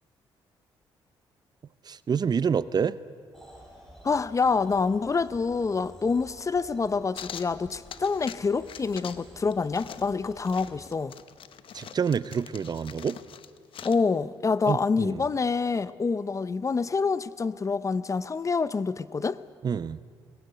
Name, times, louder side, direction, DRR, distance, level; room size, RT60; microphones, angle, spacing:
voice 1, 1.9-3.0 11.7-13.2 14.7-15.2 19.6-20.0, right 6 dB, 45° right, 0.6 m, -27 dB
sound 1, 3.3-10.9, equal, 5° left, 6.3 m, -52 dB
voice 2, 4.0-11.1 13.8-19.4, left 4 dB, 35° left, 0.7 m, -27 dB
sound 2, 7.1-8.4 8.7-9.3 9.5-14.0, left 9 dB, 65° left, 0.8 m, -44 dB
20.0 x 16.0 x 9.3 m
cardioid pair, 75°, 10 cm